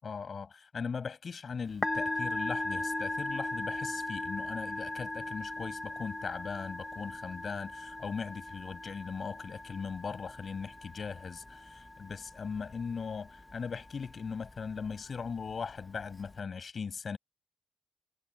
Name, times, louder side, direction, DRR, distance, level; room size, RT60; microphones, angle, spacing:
voice 1, 0.0-17.2, left 5 dB, 45° left, 7.7 m, -39 dB
Musical instrument, 1.6-16.4, left 2 dB, 15° left, 1.5 m, -39 dB
cardioid pair, 90°, 0 cm